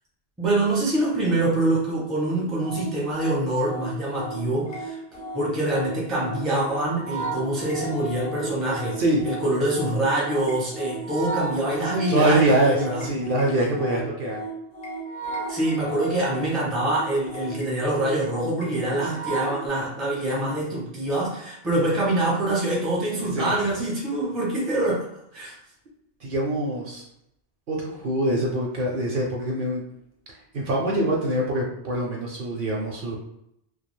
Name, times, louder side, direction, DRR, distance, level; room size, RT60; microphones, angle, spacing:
voice 1, 0.4-5.0 5.3-13.1 15.5-25.1 25.3-25.6, right 1 dB, ahead, -5 dB, 0.4 m, -25 dB
sound 1, 2.6-19.7, right 2 dB, 50° left, 0.8 m, -34 dB
voice 2, 12.1-14.4 23.3-23.5 26.2-27.0 27.7-29.8 30.3-33.2, right 1 dB, 60° right, -2 dB, 0.7 m, -24 dB
2.3 x 2.2 x 3.1 m, 0.79 s
omnidirectional pair, 1.1 m